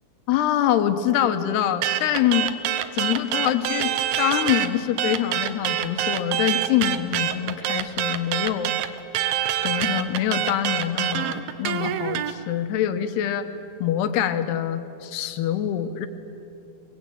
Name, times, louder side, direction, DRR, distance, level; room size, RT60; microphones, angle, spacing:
voice 1, 0.3-2.5 2.9-8.7 9.6-13.5 13.8-16.1, left 10 dB, 90° left, 9 dB, 3.2 m, -25 dB
sound 1, 1.8-4.7 5.0-12.3, right 11 dB, 75° right, 2.6 m, -25 dB
23.0 x 22.0 x 9.1 m, 2.8 s
omnidirectional pair, 4.6 m